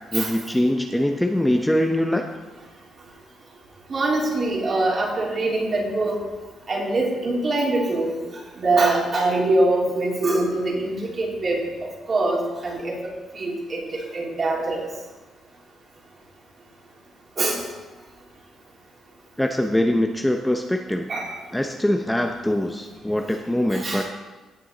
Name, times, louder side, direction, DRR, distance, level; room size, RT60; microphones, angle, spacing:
voice 1, 0.1-2.3 19.4-21.1 21.5-24.0, left 1 dB, 5° left, 4 dB, 0.7 m, -23 dB
voice 2, 3.9-6.2 6.7-8.1 8.6-12.9 13.3-14.9 17.4-17.6 21.1-21.3 23.7-24.1, right 2 dB, 40° right, -3 dB, 3.3 m, -23 dB
17.0 x 6.8 x 4.0 m, 1.2 s
cardioid pair, 90°, 0 cm